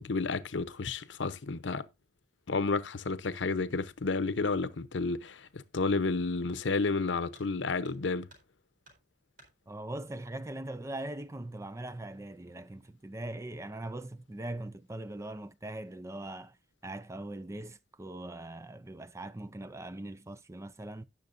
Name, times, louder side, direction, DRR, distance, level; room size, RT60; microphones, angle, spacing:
voice 1, 0.0-1.9 2.5-8.3, left 3 dB, 85° left, 0.8 m, -31 dB
sound 1, 7.3-7.6 7.8-8.6 8.8-9.6 10.7-10.8 11.3-11.4 12.2-12.5 12.9-13.3, right 1 dB, 45° right, 4.3 m, -60 dB
voice 2, 9.7-16.6 16.8-21.0, right 1 dB, 15° right, 0.5 m, -41 dB
17.5 x 6.5 x 2.5 m
head